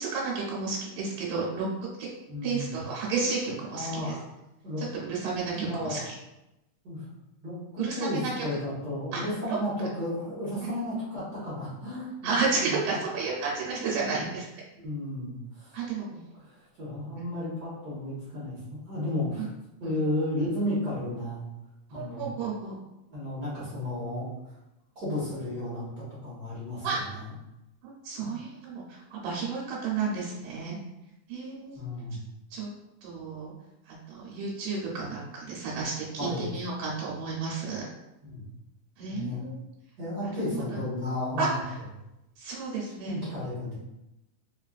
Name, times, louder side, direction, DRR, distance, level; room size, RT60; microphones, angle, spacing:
voice 1, 0.0-1.7 2.0-2.1 2.4-4.1 4.8-6.1 7.8-8.3 9.1-9.2 9.5-9.9 12.2-14.5 15.7-16.0 19.8-20.0 21.9-22.8 26.8-27.0 27.8-30.8 31.3-31.8 32.5-32.7 33.0-33.5 33.9-37.9 39.0-39.6 40.4-40.6 41.4-41.8 42.4-43.2, right 4 dB, 85° right, -5 dB, 2.4 m, -32 dB
voice 2, 2.3-2.8 3.7-4.2 4.6-4.8 5.5-6.0 6.8-7.0 7.4-13.0 13.7-14.2 14.7-15.7 16.4-19.5 19.8-21.4 21.9-22.3 23.1-24.3 24.9-27.3 31.7-32.2 36.2-36.5 38.2-38.4 39.1-39.4 40.0-41.6 43.0-43.7, left 1 dB, 65° right, -9 dB, 1.0 m, -33 dB
5.0 x 2.4 x 2.4 m, 0.93 s
omnidirectional pair, 3.7 m